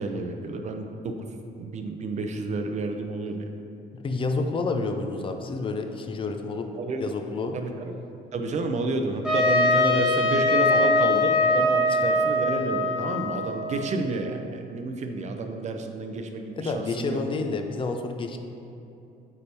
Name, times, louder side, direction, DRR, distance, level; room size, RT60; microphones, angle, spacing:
voice 1, 0.0-3.4 6.8-7.0 7.5-7.9 8.3-17.2, right 3 dB, 45° right, 5 dB, 0.6 m, -30 dB
voice 2, 4.0-6.7 7.0-7.6 11.9-12.0 16.6-18.4, left 3 dB, 30° left, 5 dB, 0.6 m, -29 dB
Trumpet, 9.2-14.1, left 2 dB, 5° right, 1.3 m, -22 dB
8.5 x 3.4 x 4.3 m, 2.8 s
cardioid pair, 110°, 17 cm